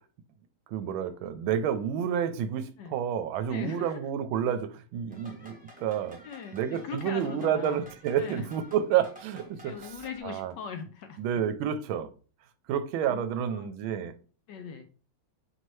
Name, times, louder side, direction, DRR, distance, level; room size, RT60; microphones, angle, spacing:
voice 1, 0.7-6.2 6.5-9.9 10.2-10.5 11.2-12.1 12.7-14.1, right 9 dB, 80° right, 1.4 m, -29 dB
voice 2, 3.5-4.0 6.2-7.8 8.2-8.5 9.6-11.2 13.1-13.7 14.5-14.9, left 6 dB, 75° left, 1.0 m, -40 dB
sound 1, 5.1-10.2, right 1 dB, 5° right, 0.7 m, -51 dB
5.9 x 2.8 x 3.1 m
omnidirectional pair, 2.2 m